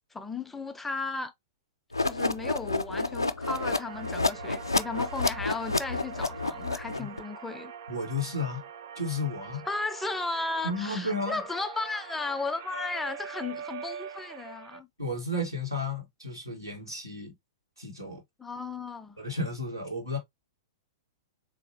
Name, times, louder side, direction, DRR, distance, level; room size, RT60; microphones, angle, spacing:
voice 1, 0.1-1.3 2.0-7.7 9.6-14.9 18.4-19.2, left 3 dB, 10° left, 0.4 m, -35 dB
sound 1, 1.9-7.2, left 3 dB, 85° left, 0.3 m, -29 dB
sound 2, 3.4-14.8, right 7 dB, 50° right, 0.5 m, -43 dB
voice 2, 7.9-8.6 8.9-9.6 10.6-11.4 15.0-17.3 17.8-18.2 19.2-20.2, left 2 dB, 90° right, 1.5 m, -33 dB
3.7 x 2.7 x 2.7 m
figure-of-eight pair, 105°, 2 cm